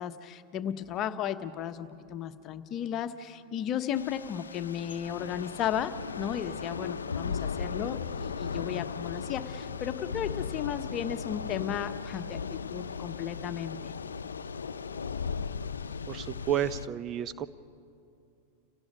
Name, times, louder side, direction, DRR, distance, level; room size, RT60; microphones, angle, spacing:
voice 1, 0.0-13.9, left 9 dB, 40° left, 10 dB, 1.0 m, -34 dB
Thunder / Rain, 3.9-16.9, left 6 dB, 85° left, 0.6 m, -37 dB
voice 2, 16.1-17.5, right 11 dB, 35° right, 15 dB, 0.6 m, -31 dB
30.0 x 17.0 x 5.5 m, 2.6 s
hypercardioid pair, 95°, 0 cm